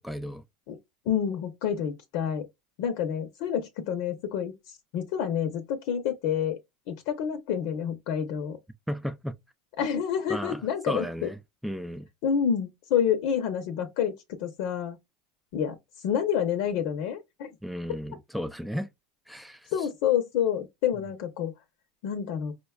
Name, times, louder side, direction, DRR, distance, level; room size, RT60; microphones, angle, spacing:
voice 1, 0.0-0.4 8.9-9.4 10.3-11.4 11.6-12.1 17.6-18.9 19.3-19.7, equal, ahead, 0.4 m, -34 dB
voice 2, 1.1-2.4 2.8-6.6 6.9-8.6 9.8-11.3 12.2-15.0 15.5-15.8 16.0-17.5 19.7-21.5 22.0-22.5, left 8 dB, 65° left, 0.7 m, -28 dB
5.0 x 2.2 x 2.3 m
supercardioid pair, 115°, 0 cm